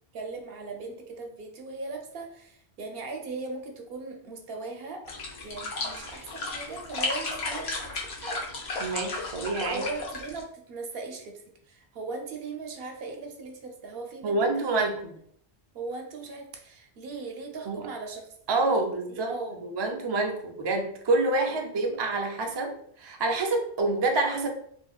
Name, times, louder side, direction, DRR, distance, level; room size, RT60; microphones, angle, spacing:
voice 1, 0.1-5.0 5.4-8.4 9.7-14.8 15.7-18.3 18.6-18.8 19.1-19.6, right 3 dB, 70° right, 3 dB, 0.8 m, -39 dB
sound 1, 5.1-10.4, left 3 dB, 80° left, 1.0 m, -34 dB
voice 2, 8.8-9.9 14.2-15.0 17.7-17.9 18.5-19.3 19.6-24.5, right 2 dB, 45° right, 2 dB, 0.3 m, -27 dB
3.5 x 2.6 x 2.3 m, 0.64 s
omnidirectional pair, 1.0 m